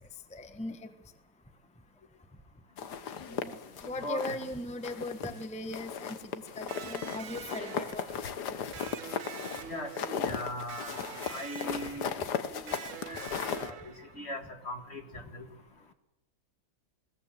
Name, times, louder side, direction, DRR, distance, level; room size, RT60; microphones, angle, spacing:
voice 1, 0.3-0.8 3.3-3.5 3.8-6.2 6.6-8.3, left 1 dB, 5° left, 8 dB, 1.1 m, -39 dB
sound 1, 2.8-4.5 4.8-5.4 5.7-13.7, left 7 dB, 85° left, 1.8 m, -37 dB
voice 2, 4.0-4.4 9.7-12.2 12.5-12.8 13.1-13.3 13.6-13.7 14.2-15.5, left 1 dB, 40° left, 6 dB, 2.0 m, -40 dB
Electric guitar, 6.7-14.4, right 9 dB, 60° right, 1.2 m, -46 dB
21.0 x 17.5 x 7.8 m, 0.96 s
omnidirectional pair, 1.7 m